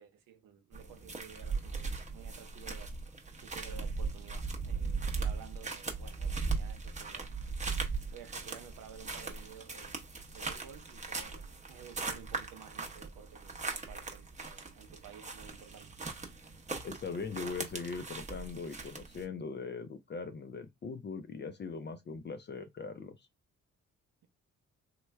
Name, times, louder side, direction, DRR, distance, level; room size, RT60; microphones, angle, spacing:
voice 1, 0.0-3.0 3.4-7.3 8.1-15.9, right 8 dB, 85° right, 0.8 m, -53 dB
sound 1, 0.7-19.2, right 4 dB, 20° right, 0.7 m, -39 dB
voice 2, 16.8-23.3, left 4 dB, 35° left, 0.4 m, -40 dB
3.1 x 2.1 x 3.3 m
cardioid pair, 85°, 33 cm